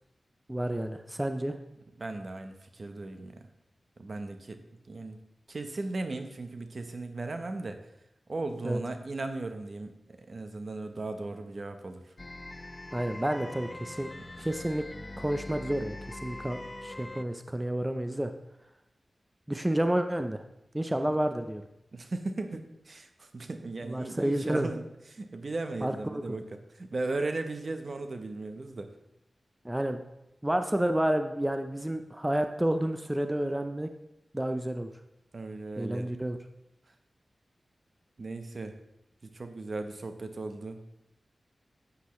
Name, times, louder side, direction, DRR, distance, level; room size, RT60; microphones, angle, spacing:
voice 1, 0.5-1.6 8.6-8.8 12.9-14.1 14.4-14.9 15.2-18.3 19.5-20.4 20.7-21.6 23.8-24.7 25.8-26.2 29.6-30.0 30.4-33.9 34.3-34.9 35.8-36.4, right 1 dB, 15° right, 7 dB, 0.6 m, -30 dB
voice 2, 2.0-3.5 4.0-4.6 4.9-5.2 5.5-7.8 8.3-12.1 14.4-14.5 21.9-28.9 35.3-36.1 38.2-38.8 39.3-40.8, right 2 dB, 55° right, 7 dB, 0.9 m, -37 dB
sound 1, 12.2-17.2, left 2 dB, 35° left, 0.5 m, -43 dB
10.0 x 8.2 x 3.2 m, 0.85 s
cardioid pair, 60°, 0 cm